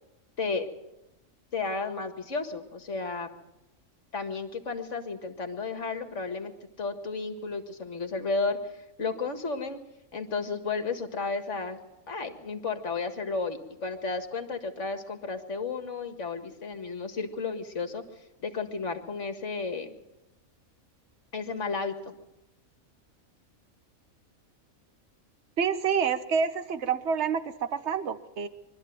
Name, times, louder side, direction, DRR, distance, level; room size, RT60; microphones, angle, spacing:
voice 1, 0.4-0.7 1.5-3.3 4.1-6.5 6.8-8.6 9.0-9.8 10.1-11.8 12.1-18.0 18.4-19.9 21.3-22.1, left 4 dB, 60° left, 7 dB, 2.2 m, -33 dB
voice 2, 25.6-28.5, right 6 dB, 55° right, 11 dB, 1.4 m, -28 dB
23.5 x 13.0 x 9.3 m, 0.94 s
omnidirectional pair, 1.5 m